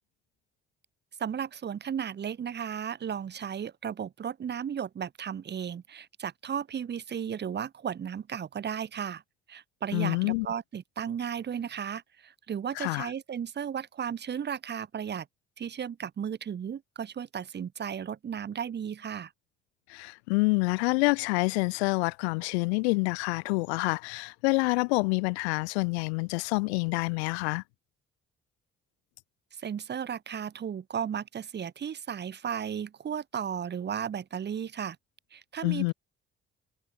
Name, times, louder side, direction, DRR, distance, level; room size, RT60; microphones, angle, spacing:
voice 1, 1.2-9.2 9.5-15.3 15.6-19.3 29.6-35.0 35.3-35.9, right 8 dB, 30° right, 0.8 m, -35 dB
voice 2, 9.9-10.5 12.8-13.1 19.9-27.6 35.6-35.9, left 28 dB, 75° left, 0.5 m, -27 dB
figure-of-eight pair, 45°, 33 cm